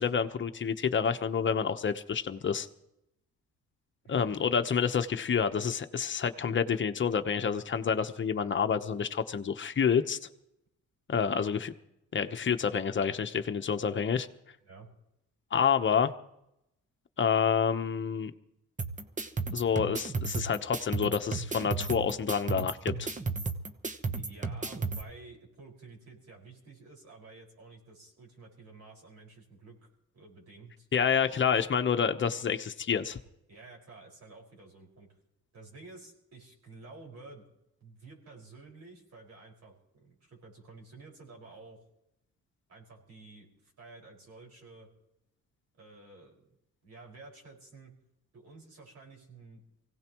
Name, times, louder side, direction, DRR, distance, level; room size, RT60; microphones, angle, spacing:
voice 1, 0.0-2.7 4.1-10.2 11.1-11.7 12.1-14.3 15.5-16.1 17.2-18.3 19.5-23.1 30.9-33.2, left 7 dB, 40° left, 8 dB, 1.0 m, -28 dB
voice 2, 4.0-4.5 14.7-14.9 24.1-29.8 30.1-30.9 33.5-35.1 35.5-37.5 37.8-41.8 42.7-44.9 45.8-46.4 46.8-47.9 48.3-49.6, right 3 dB, 60° right, -1 dB, 5.6 m, -51 dB
sound 1, 18.8-25.0, right 4 dB, 25° right, 1.1 m, -34 dB
24.5 x 17.5 x 3.1 m, 0.83 s
cardioid pair, 90°, 30 cm